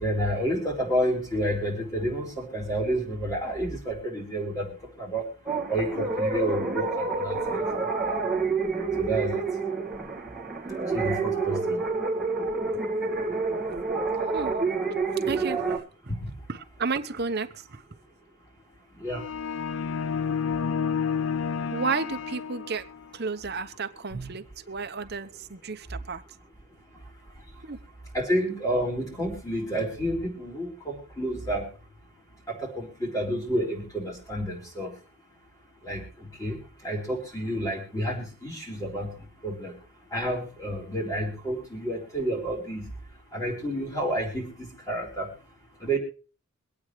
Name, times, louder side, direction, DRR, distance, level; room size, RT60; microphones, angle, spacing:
voice 1, 0.0-4.7 5.0-5.3 5.7-7.6 9.0-9.4 10.9-11.8 16.2-16.3 19.0-19.2 24.1-24.3 28.1-31.6 32.5-34.9 35.8-36.0 36.4-36.6 36.8-39.1 39.4-39.7 40.1-42.8 43.3-45.3 45.8-46.0, right 1 dB, 15° left, 0 dB, 4.1 m, -29 dB
sound 1, 5.5-15.8, right 4 dB, ahead, 1.8 m, -28 dB
voice 2, 15.3-16.1 16.5-17.8 21.7-22.9 23.1-26.2 27.6-27.8, right 4 dB, 45° right, 8 dB, 0.9 m, -32 dB
sound 2, 19.1-23.1, left 6 dB, 65° left, 0.5 m, -30 dB
24.5 x 8.6 x 3.1 m, 0.38 s
head